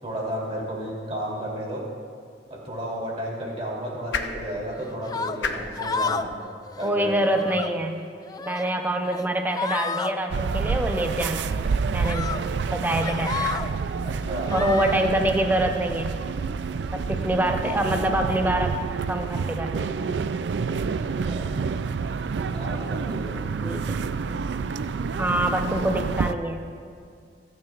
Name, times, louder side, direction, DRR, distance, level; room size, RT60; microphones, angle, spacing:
voice 1, 0.0-1.8 2.6-6.3 6.8-7.2 14.0-14.5 20.9-21.5 22.5-23.4, equal, 35° right, -3 dB, 3.1 m, -32 dB
sound 1, 2.3-8.5, left 4 dB, 80° left, 0.8 m, -38 dB
sound 2, 5.1-5.4 5.8-6.4 6.7-6.9 7.3-7.7 8.2-8.7 9.1-9.2 9.5-10.1 11.2-11.4 12.0-12.4 12.8-13.7 14.5-14.9, left 5 dB, 20° left, 0.3 m, -31 dB
voice 2, 6.8-8.0 8.4-11.6 11.9-12.3 12.7-13.5 14.5-16.1 16.9-18.7 19.1-19.9 23.6-24.0 25.2-26.7, right 1 dB, 10° right, 4 dB, 0.6 m, -25 dB
sound 3, 10.3-26.3, right 5 dB, 70° right, 0.4 m, -28 dB
27.5 x 9.5 x 2.5 m, 2.2 s
head